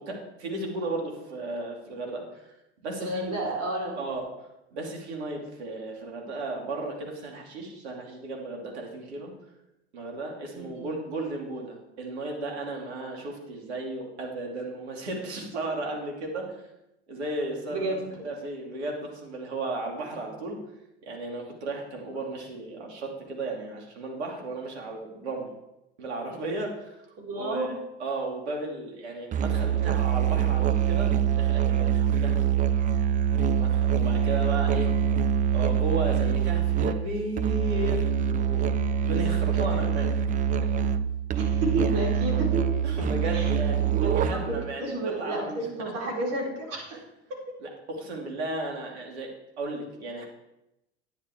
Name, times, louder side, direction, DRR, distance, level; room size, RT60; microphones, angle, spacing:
voice 1, 0.0-2.5 2.8-3.3 4.0-4.3 4.7-9.3 9.9-16.4 17.1-18.0 18.2-20.6 21.0-25.5 26.0-27.0 27.3-27.7 28.0-32.4 33.4-34.9 35.5-40.1 40.6-40.8 42.8-43.8 44.1-45.7 46.9-47.0 47.6-49.3 49.6-50.2, right 2 dB, 70° right, 0 dB, 2.8 m, -34 dB
voice 2, 3.0-4.0 10.5-11.0 17.7-18.1 27.2-27.7 32.2-32.3 41.3-42.6 43.3-43.4 44.0-46.9, right 2 dB, 45° right, -1 dB, 4.1 m, -31 dB
Musical instrument, 29.3-44.6, right 8 dB, 25° right, 0.5 m, -25 dB
10.5 x 10.0 x 3.6 m, 0.89 s
figure-of-eight pair, 75°, 34 cm